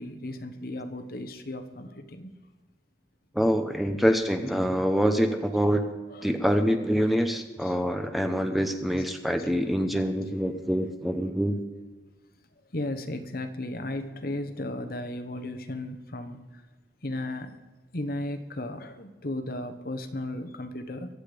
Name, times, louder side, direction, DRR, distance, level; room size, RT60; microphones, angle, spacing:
voice 1, 0.0-2.3 6.1-6.4 7.6-7.8 9.0-9.1 9.4-9.5 12.7-16.6 17.0-17.6 17.9-21.1, left 1 dB, 55° left, 8 dB, 1.4 m, -35 dB
voice 2, 3.3-5.9 6.2-11.6, equal, ahead, 6 dB, 0.9 m, -25 dB
23.0 x 8.1 x 5.2 m, 1.3 s
head